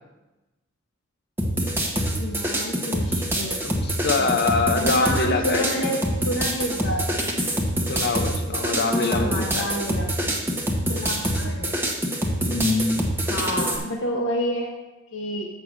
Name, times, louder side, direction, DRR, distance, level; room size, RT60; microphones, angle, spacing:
sound 1, 1.4-13.8, right 1 dB, 10° right, 1.1 m, -25 dB
voice 1, 2.2-3.6 4.2-7.1 8.8-10.4 10.9-11.8 13.3-14.7 15.1-15.5, equal, 70° left, 0 dB, 1.1 m, -29 dB
voice 2, 3.6-5.8 7.9-9.7 12.4-13.1 13.6-13.7, left 3 dB, 50° left, 6 dB, 0.9 m, -24 dB
7.6 x 5.5 x 6.4 m, 1.1 s
head